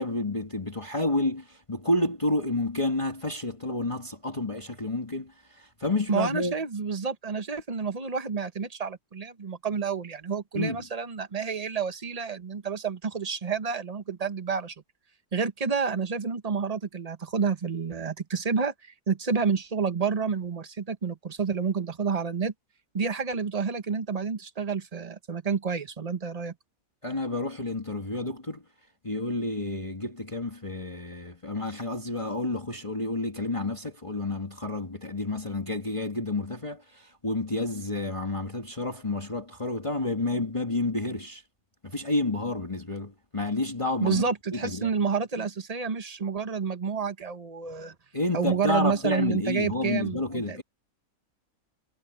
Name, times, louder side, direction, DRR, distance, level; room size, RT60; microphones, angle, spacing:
voice 1, 0.0-6.6 10.5-10.8 27.0-28.6 29.0-41.4 41.8-44.2 44.5-44.9 48.1-50.6, left 2 dB, 20° left, 2.0 m, -30 dB
voice 2, 6.1-14.7 15.3-22.5 22.9-26.5 44.0-47.9 48.3-50.6, right 5 dB, 30° right, 1.1 m, -29 dB
omnidirectional pair, 1.6 m